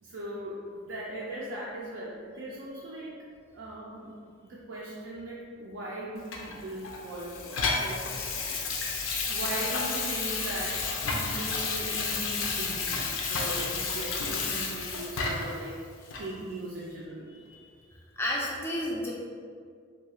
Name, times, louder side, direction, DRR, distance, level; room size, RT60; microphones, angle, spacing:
voice 1, 0.0-0.6 0.9-3.1 3.5-4.1 4.4-8.3 9.3-10.8 11.1-15.8 16.2-17.3, right 1 dB, 70° right, -6 dB, 0.4 m, -39 dB
Water tap faucet / Sink (filling or washing), 6.3-15.6 16.1-16.3, left 4 dB, 85° left, 0.4 m, -31 dB
voice 2, 18.2-19.1, left 1 dB, 10° left, -4 dB, 0.3 m, -31 dB
2.3 x 2.3 x 2.9 m, 2.1 s
head